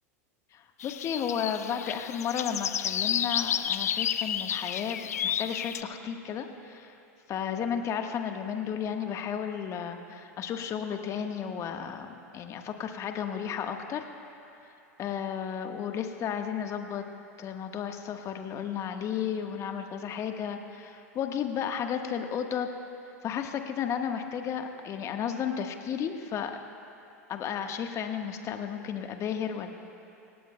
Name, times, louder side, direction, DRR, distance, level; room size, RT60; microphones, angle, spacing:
voice 1, 0.5-6.9 7.3-14.1 15.0-17.0 17.4-22.7 23.2-26.6 27.3-29.7, left 8 dB, 35° left, 5 dB, 1.3 m, -33 dB
sound 1, 0.8-5.8, left 9 dB, 80° left, 0.4 m, -31 dB
26.5 x 18.5 x 2.2 m, 2.9 s
hypercardioid pair, 90°, 8 cm